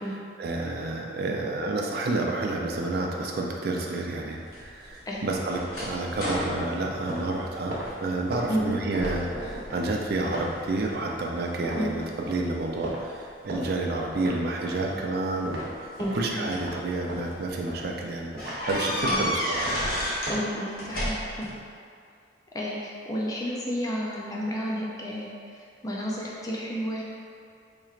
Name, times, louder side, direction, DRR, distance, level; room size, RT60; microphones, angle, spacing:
voice 1, 0.4-19.8, right 2 dB, 60° right, 0 dB, 0.4 m, -30 dB
sound 1, 4.5-7.9 8.3-8.7 9.0-9.7 10.1-10.8 11.4-12.9 14.0-14.1 15.3-16.8 17.3-17.4 17.7-17.8 18.4-20.4 20.7-21.5, equal, 55° left, 1.0 m, -32 dB
sound 2, 6.4-16.3 16.6-18.7 19.0-19.2 19.6-21.5, right 1 dB, 80° right, 0.9 m, -39 dB
voice 2, 16.0-16.5 19.0-19.3 20.3-21.5 22.5-27.0, equal, 20° left, -4 dB, 0.4 m, -31 dB
4.4 x 3.0 x 2.4 m, 2.3 s
head